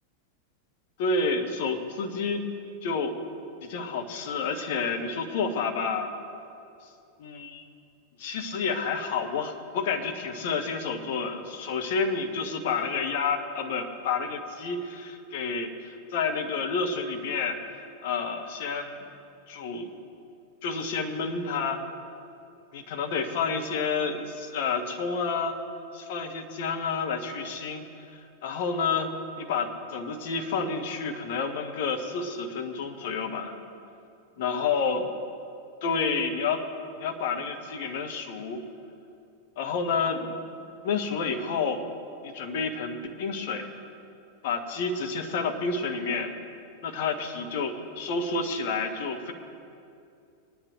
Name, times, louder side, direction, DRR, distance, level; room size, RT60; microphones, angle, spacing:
voice 1, 1.0-2.4 2.8-3.1 3.6-6.2 7.2-7.7 8.2-17.6 18.0-19.1 19.5-19.9 20.6-21.8 22.7-25.6 25.9-27.8 28.1-29.1 29.4-33.5 34.4-35.1 35.8-36.6 37.0-38.6 39.6-40.4 40.8-41.9 42.2-43.7 44.4-46.3 46.8-49.3, left 4 dB, 50° left, 4 dB, 1.4 m, -29 dB
22.0 x 10.0 x 3.2 m, 2.5 s
figure-of-eight pair, 90°, 0 cm